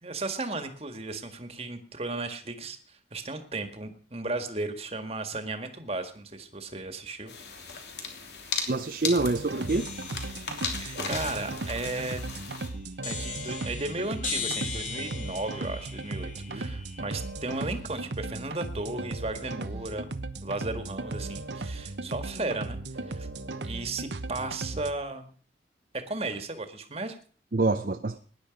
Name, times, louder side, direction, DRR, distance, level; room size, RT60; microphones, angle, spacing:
voice 1, 0.0-7.3 10.6-12.3 13.0-20.1 20.4-23.3 23.6-25.3 25.9-27.2, right 2 dB, 35° right, 8 dB, 1.8 m, -35 dB
sound 1, 7.3-12.7, left 5 dB, 70° left, 3.1 m, -37 dB
voice 2, 8.7-9.9 16.4-16.6 27.5-28.2, right 3 dB, 50° right, 8 dB, 0.6 m, -26 dB
sound 2, 9.2-24.9, right 2 dB, 80° right, 1.1 m, -37 dB
sound 3, 9.7-17.6, left 5 dB, 45° left, 3.2 m, -40 dB
18.5 x 10.5 x 5.2 m, 0.43 s
head